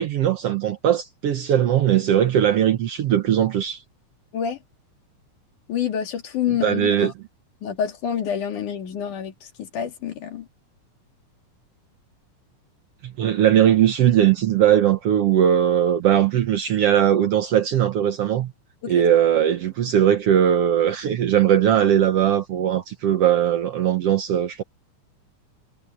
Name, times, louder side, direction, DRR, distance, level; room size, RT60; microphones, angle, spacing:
voice 1, 0.0-3.8 6.6-7.1 13.0-18.5 18.9-24.6, right 10 dB, 65° right, 1.7 m, -19 dB
voice 2, 5.7-7.1 7.6-10.5 18.8-18.9, left 8 dB, 75° left, 3.8 m, -27 dB
omnidirectional pair, 3.6 m